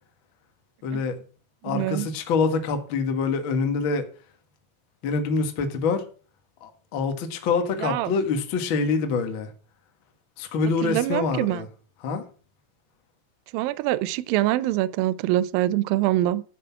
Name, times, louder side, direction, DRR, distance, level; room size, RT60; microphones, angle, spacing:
voice 1, 0.8-1.2 1.6-4.0 5.0-6.0 6.6-9.5 10.4-11.7 12.0-12.2, left 4 dB, 75° left, 1.1 m, -25 dB
voice 2, 1.7-2.1 7.8-8.1 10.8-11.6 13.5-16.4, right 15 dB, 90° right, 2.0 m, -24 dB
10.5 x 7.2 x 5.8 m
omnidirectional pair, 4.9 m